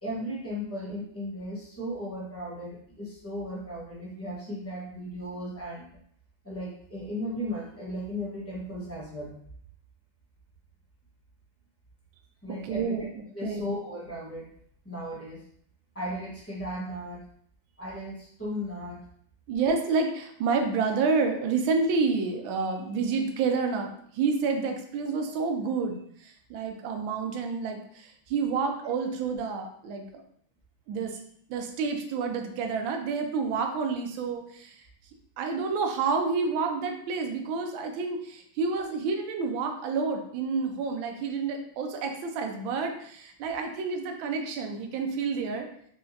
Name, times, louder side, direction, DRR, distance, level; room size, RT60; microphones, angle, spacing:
voice 1, 0.0-5.9 6.4-9.4 12.4-13.0 13.3-14.5 14.8-15.4 15.9-17.3 17.8-19.0, equal, 10° left, -7 dB, 0.8 m, -36 dB
voice 2, 12.5-13.1 13.4-13.7 19.5-30.2 30.9-31.2 31.5-34.8 35.4-45.7, right 4 dB, 90° right, 4 dB, 1.4 m, -29 dB
4.4 x 2.8 x 2.7 m, 0.65 s
omnidirectional pair, 2.1 m